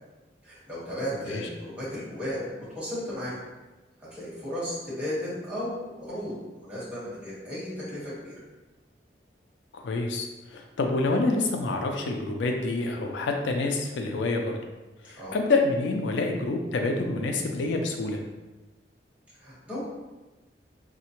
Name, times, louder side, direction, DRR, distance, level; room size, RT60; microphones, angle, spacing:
voice 1, 0.4-3.4 4.1-8.3 15.2-15.3 19.4-19.8, equal, 10° right, -10 dB, 1.2 m, -35 dB
voice 2, 9.7-14.6 15.0-18.2, left 3 dB, 80° left, 3 dB, 0.4 m, -27 dB
3.6 x 2.1 x 2.9 m, 1.1 s
head